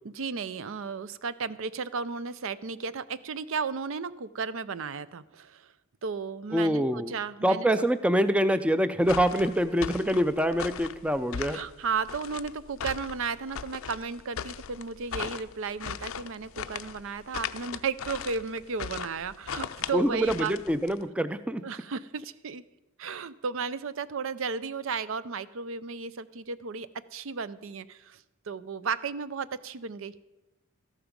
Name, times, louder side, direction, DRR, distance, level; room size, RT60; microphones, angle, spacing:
voice 1, 0.0-5.7 6.0-7.7 11.5-20.6 21.6-22.6 23.0-28.2 28.5-30.1, right 5 dB, 65° right, 16 dB, 0.5 m, -34 dB
voice 2, 6.5-7.1 7.4-11.6 19.9-21.6, equal, 5° right, 12 dB, 0.4 m, -25 dB
sound 1, 9.0-21.0, left 7 dB, 70° left, 0.5 m, -38 dB
13.5 x 12.0 x 5.2 m, 1.0 s
head